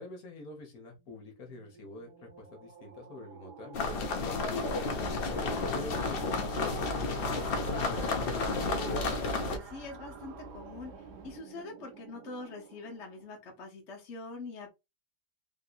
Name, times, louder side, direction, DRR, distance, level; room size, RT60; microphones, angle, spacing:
voice 1, 0.0-2.1 2.4-5.2 5.7-8.3, left 3 dB, 65° left, 3 dB, 1.5 m, -47 dB
sound 1, 0.9-13.6, right 7 dB, 85° right, 1.4 m, -51 dB
sound 2, 3.7-9.6, left 3 dB, 85° left, 0.5 m, -31 dB
sound 3, 4.9-11.4, right 1 dB, 55° right, 0.8 m, -48 dB
voice 2, 9.3-14.7, left 3 dB, 50° left, 1 dB, 1.1 m, -44 dB
3.6 x 2.7 x 2.4 m, 0.23 s
omnidirectional pair, 1.8 m